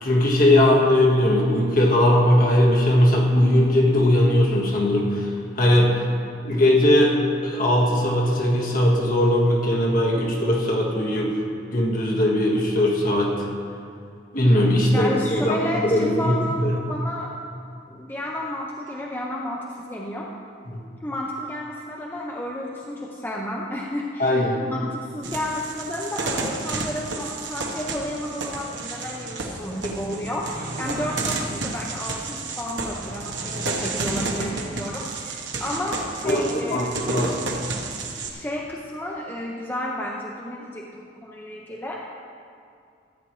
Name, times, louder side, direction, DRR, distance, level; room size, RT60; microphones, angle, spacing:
voice 1, 0.0-5.9 6.4-7.2 7.4-11.3 11.7-13.4 14.3-15.6 15.8-16.7 20.7-20.8 24.2-24.6 36.2-37.5, left 1 dB, 50° left, -1 dB, 1.6 m, -19 dB
voice 2, 14.9-17.3 17.9-20.3 21.0-37.0 38.3-42.1, left 1 dB, 10° left, -2 dB, 0.6 m, -32 dB
sound 1, 25.2-38.3, right 3 dB, 75° right, 1.2 m, -31 dB
14.5 x 9.0 x 3.2 m, 2.4 s
head